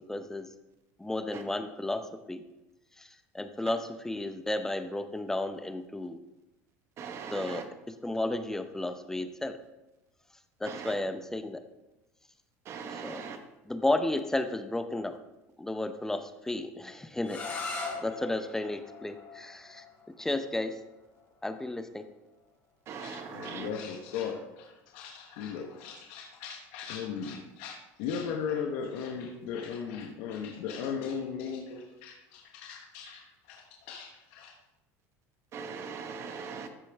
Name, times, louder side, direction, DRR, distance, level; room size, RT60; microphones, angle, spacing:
voice 1, 0.1-0.5 1.0-2.4 3.0-3.1 3.3-6.2 7.3-7.6 7.9-9.6 10.6-11.6 12.9-13.2 13.7-15.2 15.6-17.4 18.0-19.8 20.2-20.8 21.4-22.0, left 2 dB, 5° left, 0.6 m, -33 dB
voice 2, 7.0-7.6 10.7-10.9 12.7-13.4 22.9-23.7 35.5-36.7, right 6 dB, 45° right, 1.1 m, -40 dB
sound 1, 17.2-23.0, left 3 dB, 30° left, 2.5 m, -42 dB
voice 3, 23.0-34.5, left 6 dB, 75° left, 1.1 m, -37 dB
13.5 x 5.2 x 3.4 m
supercardioid pair, 120°, 7 cm